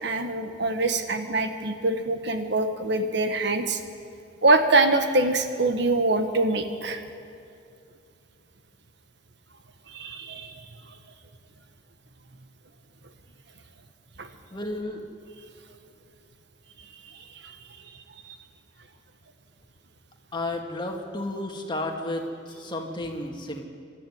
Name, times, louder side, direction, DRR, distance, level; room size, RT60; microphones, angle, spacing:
voice 1, 0.0-3.8 4.4-7.0 9.9-10.6 14.2-14.3 17.0-17.1 17.4-17.5, right 2 dB, 65° right, 7 dB, 1.5 m, -24 dB
voice 2, 14.5-15.1 20.3-23.6, left 1 dB, 25° left, 2 dB, 2.1 m, -32 dB
26.5 x 13.0 x 9.6 m, 2.5 s
head